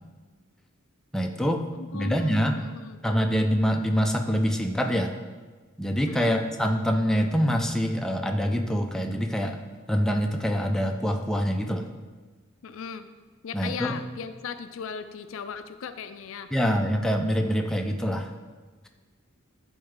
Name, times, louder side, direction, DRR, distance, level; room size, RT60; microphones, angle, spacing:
voice 1, 1.1-1.7 1.9-2.6 3.0-5.1 5.8-9.6 9.9-11.9 13.5-14.0 16.5-18.3, equal, 5° left, 3 dB, 0.4 m, -25 dB
voice 2, 1.8-3.0 6.1-6.4 12.6-13.1 13.4-16.5, left 6 dB, 65° left, 10 dB, 0.4 m, -37 dB
11.0 x 4.3 x 3.7 m, 1.4 s
head